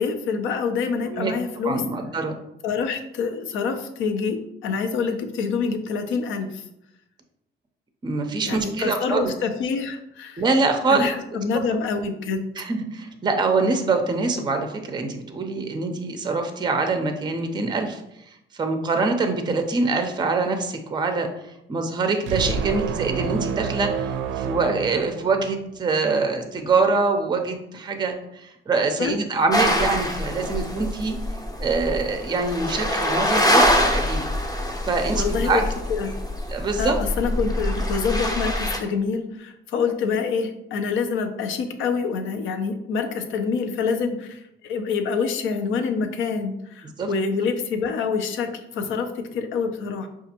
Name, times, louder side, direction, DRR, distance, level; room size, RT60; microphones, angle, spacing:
voice 1, 0.0-1.8 2.6-6.6 8.4-10.4 10.9-12.5 29.0-29.1 35.1-35.6 35.9-36.1 36.8-50.1, left 5 dB, 80° left, 6 dB, 0.5 m, -26 dB
voice 2, 1.6-2.3 8.0-9.3 10.4-11.1 12.6-18.0 18.5-31.2 31.6-34.2 34.9-35.6 36.5-36.9 47.0-47.1, right 3 dB, 20° right, 6 dB, 0.5 m, -24 dB
sound 1, 22.3-25.7, right 6 dB, 80° right, 0.4 m, -28 dB
sound 2, 29.5-38.8, left 1 dB, 20° left, 0.6 m, -24 dB
4.9 x 2.4 x 2.8 m, 0.82 s
cardioid pair, 90°, 20 cm